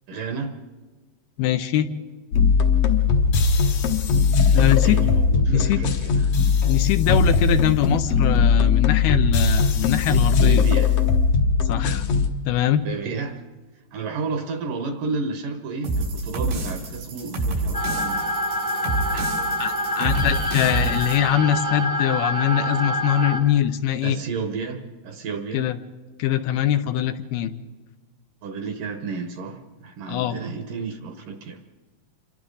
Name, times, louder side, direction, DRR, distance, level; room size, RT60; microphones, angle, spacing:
voice 1, 0.1-0.6 4.5-6.3 10.4-10.9 12.8-13.4 13.9-18.2 19.1-19.3 24.0-25.7 28.4-31.6, right 4 dB, 65° right, 7 dB, 2.3 m, -31 dB
voice 2, 1.4-1.9 4.5-5.0 5.5-5.8 6.6-10.7 11.7-12.1 12.5-12.8 19.6-24.2 25.5-25.8 26.2-27.5 30.1-30.4, left 11 dB, 80° left, 9 dB, 2.6 m, -22 dB
sound 1, 2.3-12.3, left 5 dB, 60° left, 1.7 m, -19 dB
sound 2, 15.8-21.2, right 2 dB, 90° right, 7.2 m, -28 dB
sound 3, 17.7-23.4, equal, 15° right, 0.5 m, -26 dB
27.5 x 24.5 x 3.9 m, 1.3 s
omnidirectional pair, 4.7 m